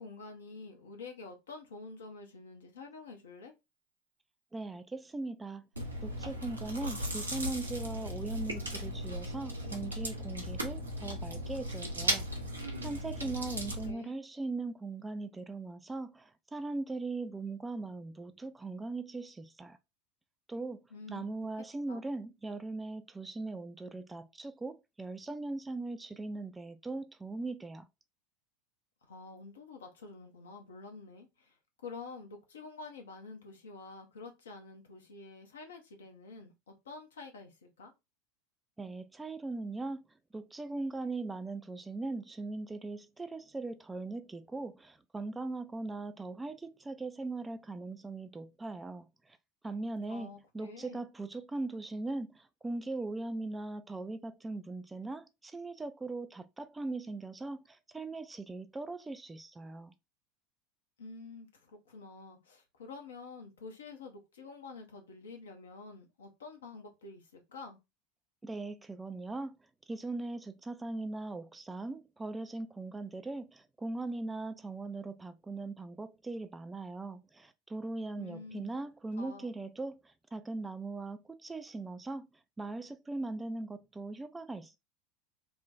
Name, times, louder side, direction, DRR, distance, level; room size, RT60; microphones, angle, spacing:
voice 1, 0.0-3.5 13.2-14.1 20.9-21.3 21.9-22.0 29.1-31.5 31.8-37.9 50.1-51.0 61.0-67.8 78.2-78.7 79.2-79.5, left 3 dB, 75° left, 0.8 m, -48 dB
voice 2, 4.5-5.7 6.0-12.3 12.8-19.8 20.5-27.9 38.8-40.0 40.3-49.4 49.6-59.9 68.4-69.5 69.9-82.3 82.6-84.8, right 2 dB, 15° right, 0.3 m, -40 dB
Chewing mastication, 5.7-13.9, equal, 85° right, 0.6 m, -37 dB
3.2 x 2.2 x 2.5 m
figure-of-eight pair, 75°, 0 cm